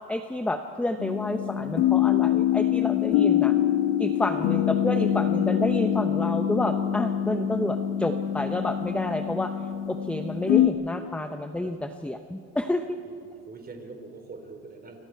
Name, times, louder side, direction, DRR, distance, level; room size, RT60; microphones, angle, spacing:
voice 1, 0.1-3.5 4.0-9.5 9.9-13.0, left 1 dB, 5° left, 7 dB, 0.8 m, -29 dB
sound 1, 1.0-10.7, left 11 dB, 75° left, 1.7 m, -25 dB
voice 2, 13.1-15.0, right 3 dB, 25° right, 4 dB, 3.7 m, -44 dB
27.5 x 24.5 x 4.7 m, 2.6 s
supercardioid pair, 115°, 37 cm